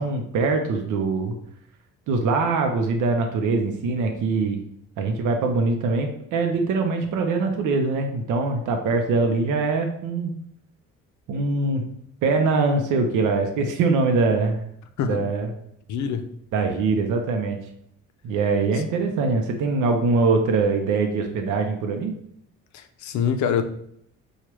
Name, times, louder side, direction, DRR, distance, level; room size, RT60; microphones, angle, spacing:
voice 1, 0.0-1.3 2.1-4.6 5.0-10.3 11.3-11.8 12.2-14.6 15.0-15.5 16.5-17.6 18.2-22.2, right 3 dB, 85° right, 0.6 m, -23 dB
voice 2, 15.9-16.3 22.7-23.6, left 7 dB, 70° left, 0.5 m, -25 dB
4.6 x 2.3 x 3.0 m
cardioid pair, 90°, 30 cm